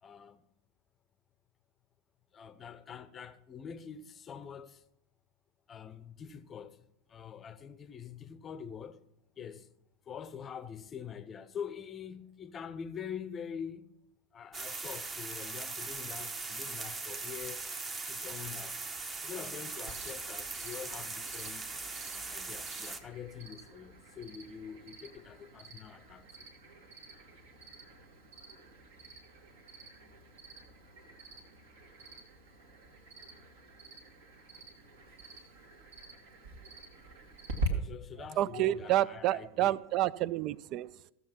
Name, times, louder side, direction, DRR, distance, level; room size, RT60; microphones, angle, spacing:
voice 1, 0.0-0.4 2.3-4.8 5.7-9.0 9.4-9.7 10.1-13.9 14.3-17.7 18.0-18.8 19.2-21.7 22.1-26.3 37.7-39.8, left 7 dB, 25° left, 0.7 m, -45 dB
sound 1, 14.5-23.0, right 3 dB, 20° right, 1.0 m, -40 dB
Cricket, 19.9-37.7, right 2 dB, 55° right, 1.8 m, -46 dB
voice 2, 38.4-41.1, right 14 dB, 40° right, 0.4 m, -29 dB
15.0 x 7.1 x 5.8 m
figure-of-eight pair, 90°, 0 cm